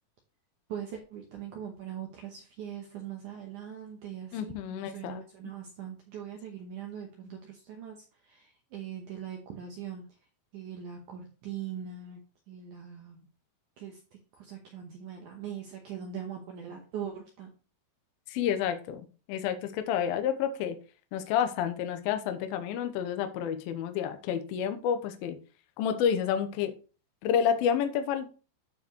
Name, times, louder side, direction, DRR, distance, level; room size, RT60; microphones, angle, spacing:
voice 1, 0.7-10.0 10.5-12.2 12.5-13.3 13.8-17.5, right 9 dB, 85° right, 2 dB, 1.7 m, -41 dB
voice 2, 4.3-5.2 18.3-20.8 21.1-25.4 25.8-26.7 27.2-28.3, left 8 dB, 75° left, 8 dB, 2.3 m, -29 dB
13.0 x 4.6 x 3.1 m, 0.35 s
omnidirectional pair, 5.1 m